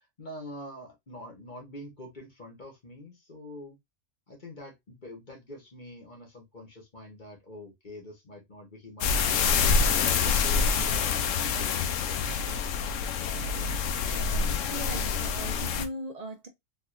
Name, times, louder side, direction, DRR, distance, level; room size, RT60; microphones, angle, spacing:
voice 1, 0.2-3.8 4.3-11.1 11.5-12.4 13.3-13.7, left 1 dB, 40° left, 1.4 m, -45 dB
sound 1, 9.0-15.9, left 5 dB, 85° left, 1.0 m, -26 dB
voice 2, 14.7-16.5, right 1 dB, 35° right, 0.8 m, -38 dB
4.0 x 2.9 x 2.5 m
omnidirectional pair, 1.3 m